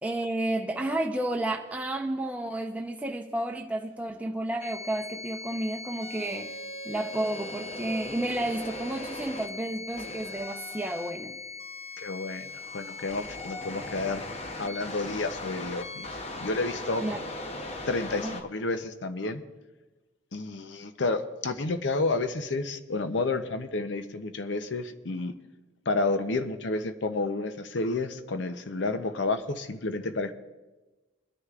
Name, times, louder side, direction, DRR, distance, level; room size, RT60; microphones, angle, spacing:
voice 1, 0.0-6.6 6.8-11.4 17.0-17.2 18.1-18.3, right 1 dB, 5° right, 2 dB, 0.7 m, -31 dB
sound 1, 4.6-18.4, left 2 dB, 30° left, 0.8 m, -39 dB
voice 2, 12.0-14.2 14.6-16.1 16.4-17.1 17.8-19.4 20.3-25.3 25.9-30.3, left 3 dB, 65° left, 9 dB, 0.7 m, -30 dB
23.5 x 9.9 x 2.4 m, 1.2 s
head